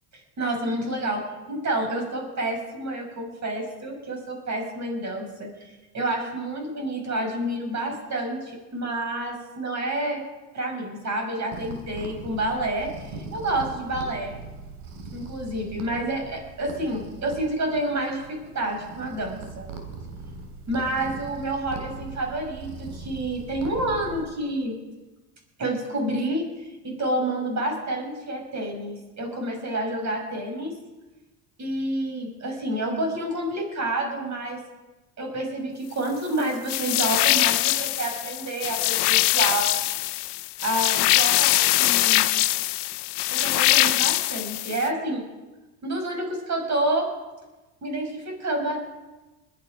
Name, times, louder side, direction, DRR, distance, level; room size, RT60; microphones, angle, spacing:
voice 1, 0.4-1.2 1.5-5.5 5.9-10.2 10.5-14.3 15.1-19.7 20.7-24.8 25.6-30.7 31.6-34.6 35.2-39.7 40.6-42.3 43.3-45.2 45.8-47.1 47.8-48.8, right 1 dB, 40° right, 2 dB, 6.1 m, -29 dB
sound 1, 11.5-24.2, right 3 dB, 65° right, 3.1 m, -40 dB
sound 2, 36.7-44.9, left 18 dB, 65° left, 0.8 m, -22 dB
21.0 x 9.3 x 5.2 m, 1.1 s
hypercardioid pair, 80°, 44 cm